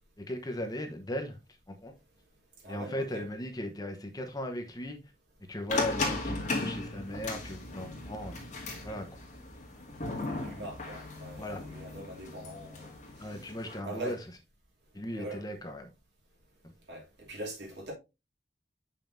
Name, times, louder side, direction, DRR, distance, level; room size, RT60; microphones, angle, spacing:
voice 1, 0.2-1.4 1.7-1.9 2.7-5.1 5.5-8.4 8.8-9.0 11.4-11.6 13.2-14.2 14.9-15.9, left 1 dB, 20° left, 1.0 m, -37 dB
voice 2, 2.6-3.3 10.2-12.9 13.2-13.4 13.8-14.2 15.1-15.4 16.9-17.9, right 1 dB, 70° right, 2.7 m, -42 dB
sound 1, 5.7-13.8, left 3 dB, 45° left, 2.0 m, -37 dB
6.8 x 5.7 x 2.6 m
head